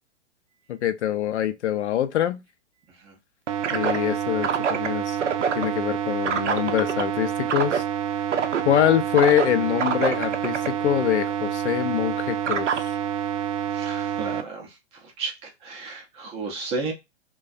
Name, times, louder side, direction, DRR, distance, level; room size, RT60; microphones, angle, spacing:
voice 1, 0.7-2.4 3.7-5.2 5.5-7.8 8.6-12.9, left 11 dB, 70° left, 0.5 m, -24 dB
sound 1, 3.5-14.4, right 8 dB, 85° right, 0.5 m, -26 dB
voice 2, 13.7-14.8 15.0-16.9, right 3 dB, 15° right, 0.4 m, -33 dB
2.3 x 2.2 x 2.4 m
hypercardioid pair, 115°, 35 cm